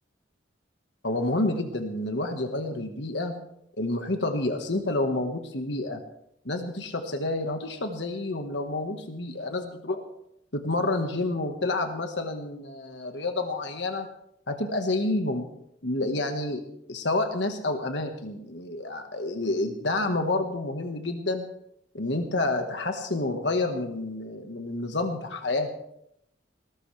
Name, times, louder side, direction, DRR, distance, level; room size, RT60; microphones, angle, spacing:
voice 1, 1.0-3.4 3.8-6.0 6.4-10.0 10.5-14.1 14.5-15.4 15.8-16.6 16.9-21.4 21.9-25.7, left 2 dB, 70° left, 5 dB, 1.6 m, -29 dB
20.0 x 18.5 x 3.4 m, 0.77 s
head